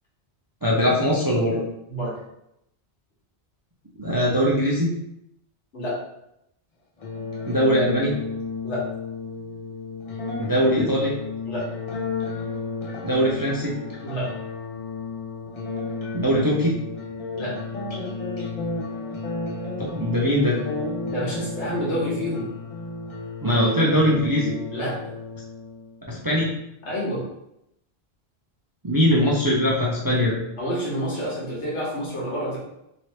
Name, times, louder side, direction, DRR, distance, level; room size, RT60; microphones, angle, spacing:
voice 1, 0.6-1.6 4.0-4.9 7.5-8.2 10.4-11.2 13.0-13.8 16.1-16.8 19.8-20.6 23.4-24.6 26.1-26.5 28.8-30.4, equal, 35° right, -4 dB, 0.3 m, -21 dB
sound 1, 7.0-26.0, left 3 dB, 40° left, 0.7 m, -32 dB
voice 2, 21.1-22.5 24.7-25.1 26.8-27.2 30.6-32.6, equal, 85° left, -5 dB, 1.6 m, -28 dB
3.1 x 2.9 x 2.9 m, 0.80 s
omnidirectional pair, 1.1 m